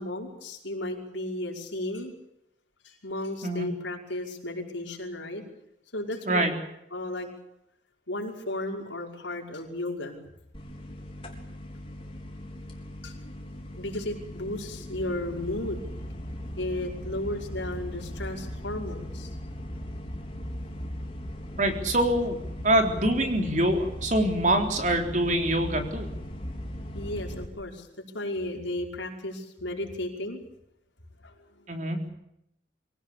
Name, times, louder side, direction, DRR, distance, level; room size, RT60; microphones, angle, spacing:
voice 1, 0.0-2.1 2.8-5.4 5.9-6.5 6.9-7.3 8.1-10.2 13.0-13.2 13.8-15.8 16.6-19.3 26.9-27.9 28.1-30.4 31.2-31.7, left 1 dB, 90° left, 1 dB, 5.5 m, -34 dB
sound 1, 10.5-27.4, equal, 30° left, 3.5 m, -38 dB
voice 2, 21.6-22.4 22.6-26.1 31.7-32.0, right 1 dB, 40° right, 4 dB, 3.9 m, -24 dB
25.0 x 17.0 x 8.7 m, 0.81 s
head